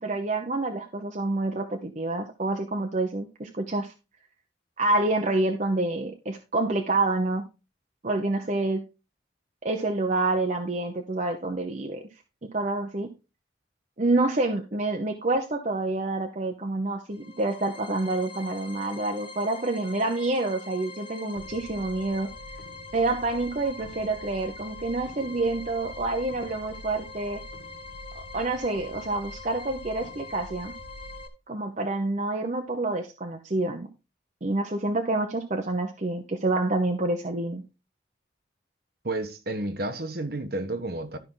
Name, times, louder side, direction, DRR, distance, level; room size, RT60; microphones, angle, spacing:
voice 1, 0.0-3.9 4.8-7.4 8.0-8.8 9.6-12.0 12.5-13.1 14.0-22.3 22.9-27.4 28.1-30.7 31.5-33.9 34.4-37.6, right 2 dB, 40° right, 0.9 m, -27 dB
sound 1, 17.1-31.3, left 3 dB, 30° left, 1.4 m, -43 dB
sound 2, 21.3-31.2, left 1 dB, 75° left, 1.0 m, -47 dB
voice 2, 39.0-41.2, right 2 dB, 55° right, 1.3 m, -31 dB
12.5 x 5.6 x 3.8 m
head